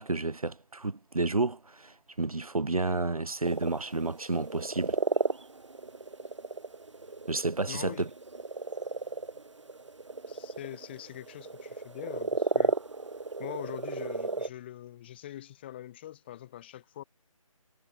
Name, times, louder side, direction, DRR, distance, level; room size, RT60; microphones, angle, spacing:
voice 1, 0.0-5.0 7.3-8.1, right 3 dB, 75° right, 0.9 m, -31 dB
sound 1, 3.4-14.5, right 3 dB, 55° right, 4.8 m, -34 dB
voice 2, 7.7-8.1 10.3-12.8 13.4-17.0, left 12 dB, 20° left, 2.8 m, -43 dB
figure-of-eight pair, 155°, 18 cm